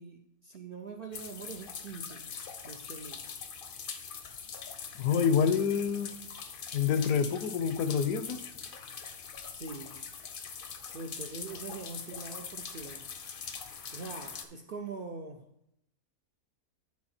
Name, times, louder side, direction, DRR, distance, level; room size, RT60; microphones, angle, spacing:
voice 1, 0.0-2.4 2.6-3.3 9.5-9.9 10.9-13.0 13.9-15.4, right 4 dB, 65° right, 4 dB, 0.5 m, -43 dB
sound 1, 1.1-14.4, left 6 dB, 55° left, 0.6 m, -43 dB
voice 2, 5.0-6.1 6.7-8.5, left 7 dB, 75° left, 11 dB, 1.0 m, -27 dB
9.5 x 4.7 x 4.2 m, 0.78 s
omnidirectional pair, 1.6 m